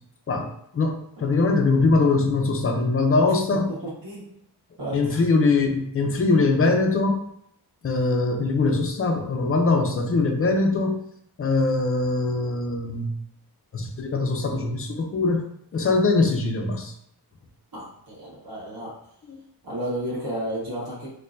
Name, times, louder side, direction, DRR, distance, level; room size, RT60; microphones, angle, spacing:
voice 1, 0.3-3.7 4.9-7.2 7.8-11.0 11.4-13.1 13.7-15.4 15.7-16.9 19.2-19.4, left 3 dB, 35° left, 3 dB, 0.5 m, -22 dB
voice 2, 4.8-5.2 17.7-18.9 19.6-21.1, right 1 dB, 55° right, -7 dB, 1.4 m, -32 dB
4.4 x 2.2 x 2.5 m, 0.70 s
wide cardioid pair, 125°, 42 cm